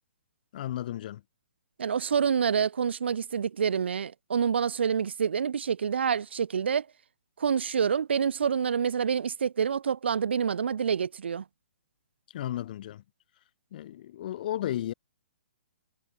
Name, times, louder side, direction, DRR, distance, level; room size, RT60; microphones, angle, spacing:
voice 1, 0.5-1.2 12.3-13.0 13.7-14.9, left 12 dB, 50° left, 3.8 m, -34 dB
voice 2, 1.8-6.9 7.4-11.4, right 7 dB, 75° right, 0.7 m, -27 dB
hypercardioid pair, 140°, 6 cm